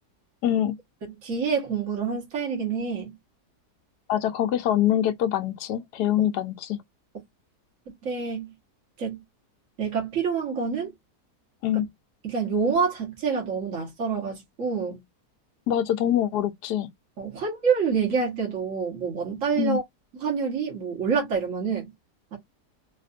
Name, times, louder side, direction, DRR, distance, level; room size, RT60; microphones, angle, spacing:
voice 1, 0.4-0.7 4.1-6.8 11.6-11.9 15.7-16.9 19.6-19.8, left 11 dB, 85° left, 1.2 m, -24 dB
voice 2, 1.0-3.2 8.0-8.5 9.0-9.2 9.8-10.9 11.7-11.8 12.2-15.0 17.2-19.8 20.2-21.9 22.3-22.4, right 5 dB, 50° right, 1.8 m, -27 dB
4.2 x 2.7 x 2.5 m
omnidirectional pair, 1.7 m